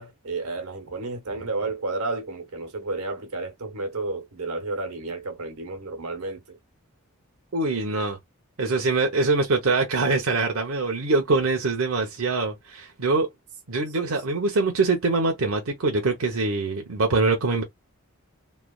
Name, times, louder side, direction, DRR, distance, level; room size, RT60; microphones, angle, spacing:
voice 1, 0.0-6.6 14.0-14.1, right 3 dB, 90° right, 1.1 m, -32 dB
voice 2, 7.5-8.2 8.6-13.3 13.7-17.6, right 3 dB, 65° right, 0.7 m, -23 dB
3.2 x 2.2 x 2.3 m
head